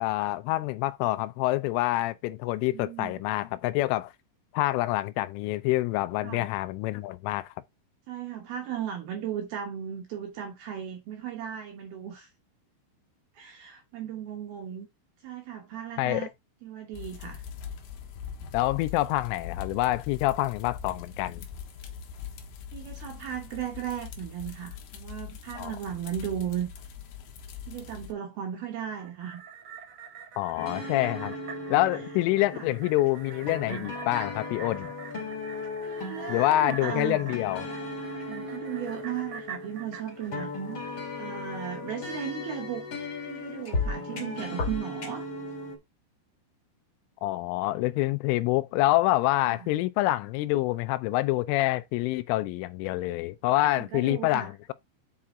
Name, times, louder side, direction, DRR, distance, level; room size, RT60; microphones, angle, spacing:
voice 1, 0.0-4.1 4.5-7.5 16.0-16.3 18.5-21.4 25.6-25.7 30.4-31.4 31.7-34.9 36.3-37.7 47.2-54.7, left 17 dB, 85° left, 3.0 m, -27 dB
voice 2, 2.7-3.1 6.2-6.5 8.1-12.3 13.3-14.9 15.2-16.3 16.6-17.4 22.7-26.7 27.7-29.4 32.5-32.7 35.8-37.2 38.3-40.8 41.2-42.9 43.2-45.3 49.5-49.7 53.6-54.5, right 9 dB, 75° right, 2.3 m, -36 dB
sound 1, 16.9-28.1, left 7 dB, 70° left, 2.8 m, -42 dB
sound 2, 28.8-41.3 41.7-41.8, right 6 dB, 50° right, 2.0 m, -45 dB
sound 3, 30.6-45.8, left 3 dB, 35° left, 2.0 m, -36 dB
7.6 x 5.8 x 3.6 m
omnidirectional pair, 5.8 m